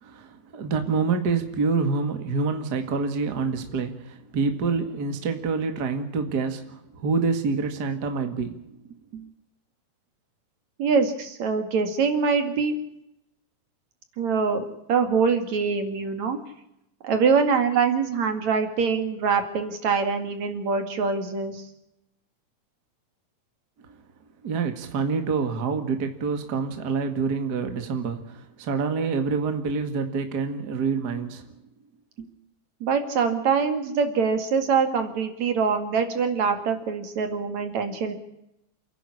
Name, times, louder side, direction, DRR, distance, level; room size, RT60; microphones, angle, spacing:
voice 1, 0.0-8.6 8.9-9.2 24.4-31.4 32.2-32.3, right 4 dB, 35° right, 2.2 m, -27 dB
voice 2, 10.8-12.7 14.2-16.4 17.0-21.6 32.8-38.1, right 5 dB, 65° right, 3.5 m, -24 dB
29.0 x 11.0 x 10.0 m
omnidirectional pair, 3.5 m